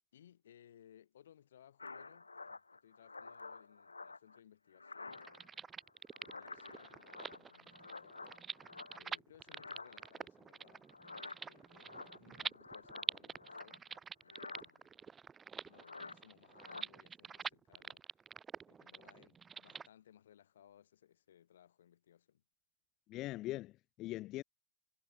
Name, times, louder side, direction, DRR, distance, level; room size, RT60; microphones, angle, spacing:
voice 1, 0.1-5.2 6.1-8.2 8.9-10.9 11.5-13.9 14.2-15.1 15.5-18.0 18.7-22.4, left 10 dB, 65° left, 7.1 m, -64 dB
sound 1, 1.8-4.4 4.7-5.6 5.9-9.2 9.5-10.2 10.9-14.0 14.3-14.7 15.7-16.2 16.5-16.8, left 3 dB, 80° left, 0.6 m, -50 dB
sound 2, 5.1-19.9, right 6 dB, 20° right, 0.5 m, -47 dB
voice 2, 23.1-24.4, left 17 dB, 35° left, 0.6 m, -41 dB
figure-of-eight pair, 90°, 0 cm